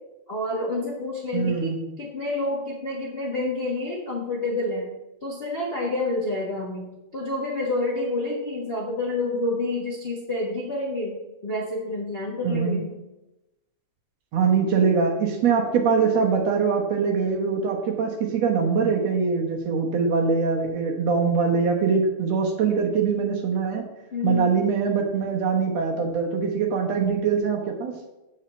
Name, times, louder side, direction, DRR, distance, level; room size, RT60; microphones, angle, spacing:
voice 1, 0.3-4.9 5.2-11.1 11.4-12.9 16.2-16.3 24.1-24.7, left 2 dB, 35° left, -4 dB, 1.0 m, -28 dB
voice 2, 1.3-1.8 12.4-12.8 14.3-23.9 24.2-27.9, right 5 dB, 65° right, 1 dB, 2.2 m, -23 dB
7.8 x 5.6 x 7.1 m, 0.98 s
omnidirectional pair, 3.3 m